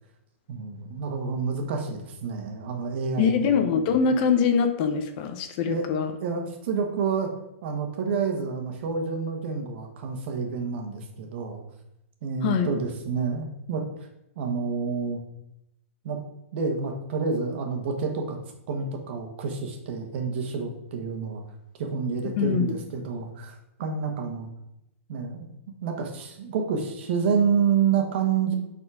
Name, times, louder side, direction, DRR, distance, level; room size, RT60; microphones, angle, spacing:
voice 1, 0.5-3.7 5.6-5.9 6.2-7.3 7.6-11.6 12.2-14.1 14.3-15.2 16.0-16.2 16.5-18.4 18.7-21.4 21.8-24.5 25.1-25.5 25.8-28.5, right 5 dB, 50° right, 3 dB, 1.5 m, -28 dB
voice 2, 3.2-6.1 12.4-12.7 22.4-22.7, left 6 dB, 35° left, 7 dB, 0.7 m, -23 dB
7.4 x 4.3 x 4.9 m, 0.86 s
hypercardioid pair, 155°, 8 cm